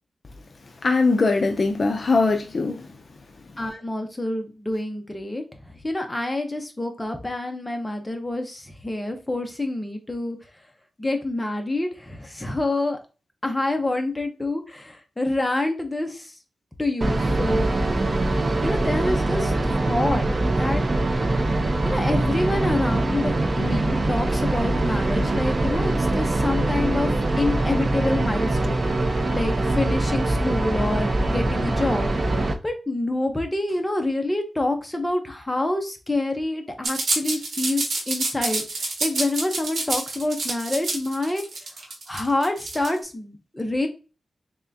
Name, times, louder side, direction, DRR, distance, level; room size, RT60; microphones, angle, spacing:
voice 1, 0.8-2.9, left 3 dB, 45° left, 0.4 m, -21 dB
voice 2, 3.6-10.4 11.0-13.0 13.4-16.3 16.8-17.7 18.6-20.3 20.6-20.8 21.8-28.8 29.1-32.1 32.4-41.5 42.1-43.9, left 2 dB, 15° left, 0.7 m, -27 dB
sound 1, 17.0-32.5, right 2 dB, 35° right, 0.5 m, -23 dB
sound 2, 36.8-43.0, right 3 dB, 70° right, 1.1 m, -27 dB
3.6 x 3.3 x 2.6 m
wide cardioid pair, 120°, 0 cm